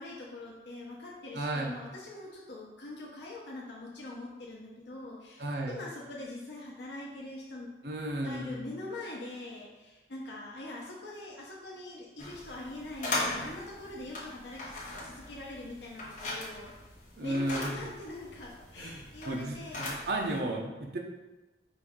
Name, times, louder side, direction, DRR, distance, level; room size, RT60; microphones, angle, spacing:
voice 1, 0.0-7.7 8.2-16.7 17.2-19.9, left 2 dB, 75° left, -4 dB, 0.8 m, -43 dB
voice 2, 1.3-1.7 5.4-5.8 7.8-8.6 17.2-17.8 18.8-21.0, right 1 dB, 60° right, 0 dB, 0.6 m, -34 dB
sound 1, 12.2-20.4, left 2 dB, 45° left, 1.0 m, -39 dB
5.0 x 2.6 x 3.6 m, 1.1 s
head